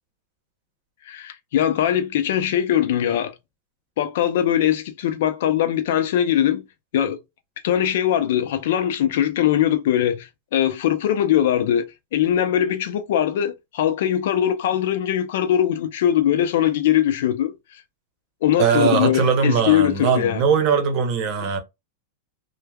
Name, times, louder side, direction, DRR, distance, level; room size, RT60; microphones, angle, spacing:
voice 1, 1.0-3.3 4.0-6.6 6.9-7.2 7.6-11.9 12.1-17.5 18.4-20.4, left 10 dB, 70° left, 0.5 m, -21 dB
voice 2, 18.6-21.6, right 6 dB, 45° right, 0.8 m, -20 dB
3.2 x 2.1 x 2.2 m
supercardioid pair, 150°, 0 cm